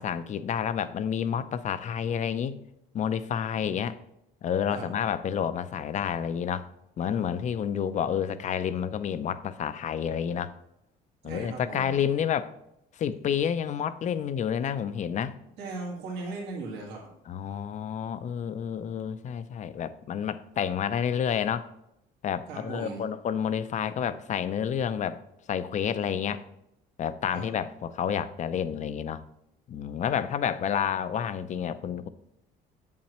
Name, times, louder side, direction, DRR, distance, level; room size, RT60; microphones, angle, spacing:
voice 1, 0.0-2.6 2.9-4.0 4.4-6.7 7.0-10.5 11.2-12.5 12.9-15.4 17.3-21.7 22.2-25.2 25.5-26.4 27.0-29.2 29.7-32.1, left 8 dB, 45° left, 13 dB, 0.5 m, -29 dB
voice 2, 11.2-11.9 15.6-17.0 22.5-23.0 27.3-27.5, right 3 dB, 80° right, -2 dB, 1.8 m, -37 dB
7.7 x 7.3 x 3.0 m, 0.81 s
cardioid pair, 110°, 17 cm